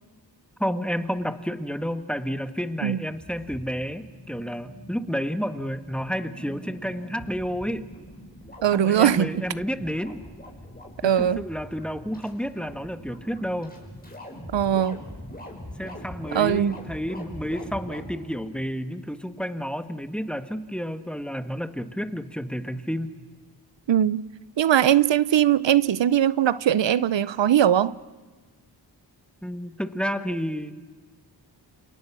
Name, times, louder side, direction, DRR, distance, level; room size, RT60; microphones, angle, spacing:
voice 1, 0.6-7.8 8.7-10.2 11.0-13.7 15.8-23.1 29.4-30.7, equal, ahead, 1.5 m, -30 dB
sound 1, 1.4-18.1, left 1 dB, 20° left, 6.1 m, -43 dB
voice 2, 8.6-9.4 11.0-11.4 14.5-15.0 16.3-16.8 23.9-24.2 24.6-27.9, right 10 dB, 80° right, 0.7 m, -20 dB
28.5 x 28.5 x 6.1 m
wide cardioid pair, 100°, 44 cm